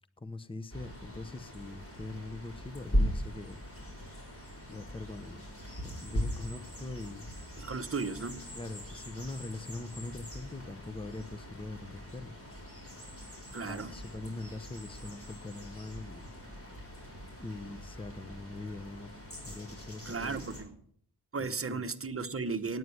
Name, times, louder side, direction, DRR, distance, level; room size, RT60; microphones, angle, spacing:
voice 1, 0.2-3.6 4.1-4.2 4.7-5.5 5.8-7.3 8.5-12.3 12.9-13.1 13.6-16.3 17.4-19.1 19.4-20.5 21.4-21.9, left 2 dB, 15° left, 0.8 m, -42 dB
sound 1, 0.7-20.6, equal, 35° left, 4.9 m, -40 dB
voice 2, 7.6-8.4 13.5-13.9 20.1-20.7 21.3-22.8, right 4 dB, 35° right, 1.0 m, -35 dB
9.3 x 9.3 x 9.7 m
wide cardioid pair, 80°, 39 cm